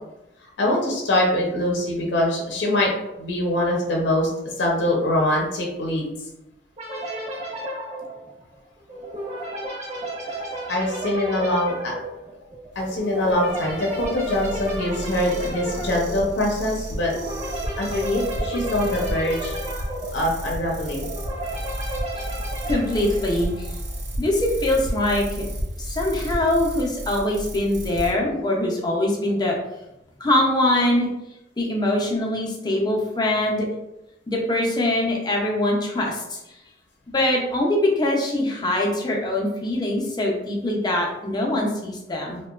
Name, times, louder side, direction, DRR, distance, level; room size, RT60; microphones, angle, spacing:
voice 1, 0.6-2.9 3.2-4.3 4.6-6.1 10.7-11.9 12.8-17.1 17.8-19.5 20.1-21.1, left 1 dB, 75° left, -2 dB, 0.6 m, -23 dB
sound 1, 6.8-24.0, right 1 dB, 40° right, 0.8 m, -33 dB
sound 2, 12.7-28.1, equal, 70° right, 0.6 m, -33 dB
voice 2, 22.7-23.7 24.2-25.4 25.9-29.6 30.2-31.1 31.6-33.7 34.3-36.4 37.1-42.4, left 1 dB, 25° left, -1 dB, 0.5 m, -23 dB
2.7 x 2.2 x 2.3 m, 0.91 s
head